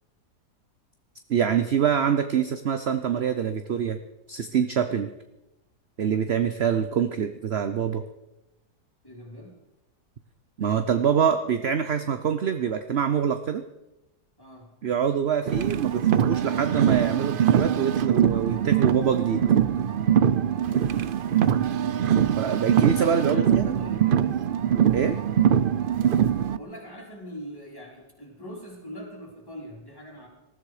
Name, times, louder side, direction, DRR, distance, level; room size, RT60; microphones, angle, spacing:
voice 1, 1.3-4.0 4.3-5.1 6.0-8.0 10.6-13.6 14.8-19.4 22.4-23.8 24.9-25.2, right 8 dB, 50° right, 9 dB, 0.9 m, -25 dB
voice 2, 9.0-9.6 14.4-14.7 20.6-21.6 23.2-24.5 26.5-30.3, equal, 15° left, -2 dB, 4.2 m, -42 dB
Car, 15.5-26.6, right 9 dB, 85° right, 0.4 m, -23 dB
20.0 x 13.5 x 4.9 m, 0.94 s
omnidirectional pair, 1.7 m